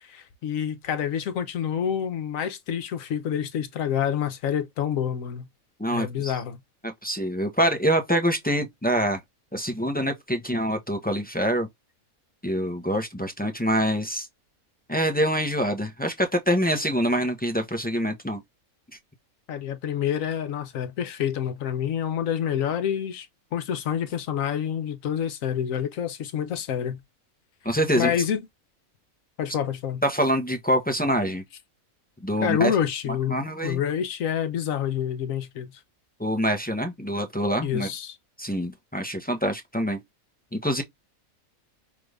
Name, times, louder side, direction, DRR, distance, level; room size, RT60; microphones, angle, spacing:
voice 1, 0.0-5.5 5.9-6.6 19.5-23.3 23.5-27.0 28.0-28.4 29.4-30.0 32.4-35.7 37.6-38.2, left 9 dB, 70° left, 1.1 m, -28 dB
voice 2, 5.8-6.3 6.8-9.2 9.5-11.7 12.4-14.3 14.9-18.4 27.6-28.1 30.0-31.4 32.2-32.7 33.3-33.8 36.2-37.9 38.4-40.0 40.5-40.8, equal, 10° left, 0.5 m, -25 dB
6.0 x 2.5 x 3.3 m
omnidirectional pair, 1.5 m